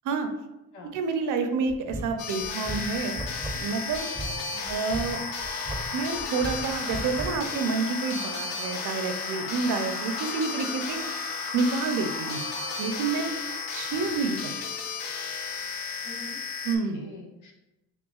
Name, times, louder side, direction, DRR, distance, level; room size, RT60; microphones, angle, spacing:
voice 1, 0.9-3.2 3.6-4.1 4.7-5.2 5.9-11.0 11.5-12.4 12.8-13.3 13.7-14.5 16.6-17.0, right 4 dB, 65° right, 6 dB, 0.6 m, -28 dB
sound 1, 1.7-7.6, right 2 dB, 10° right, 0.6 m, -37 dB
sound 2, 2.2-16.8, left 5 dB, 85° left, 0.7 m, -34 dB
sound 3, 2.3-16.1, left 2 dB, 50° left, 1.4 m, -40 dB
voice 2, 4.5-4.8 13.4-13.5 16.0-17.5, left 1 dB, 65° left, 0 dB, 1.0 m, -46 dB
5.4 x 2.4 x 2.4 m, 0.97 s
supercardioid pair, 80°, 33 cm